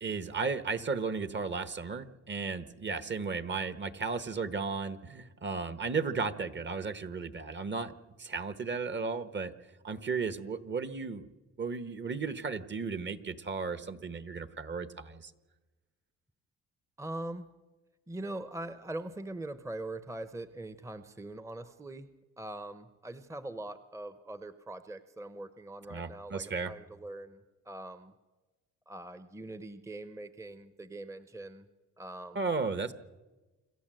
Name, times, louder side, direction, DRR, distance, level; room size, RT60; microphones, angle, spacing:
voice 1, 0.0-7.9 8.2-9.5 9.8-11.3 11.6-15.3 25.9-26.7 32.3-32.9, right 4 dB, 40° right, 13 dB, 1.3 m, -34 dB
voice 2, 17.0-17.5 18.1-22.1 22.4-28.1 28.9-31.7 32.0-32.5, right 2 dB, 10° right, 12 dB, 0.8 m, -42 dB
26.5 x 13.5 x 7.8 m, 1.2 s
cardioid pair, 90°, 30 cm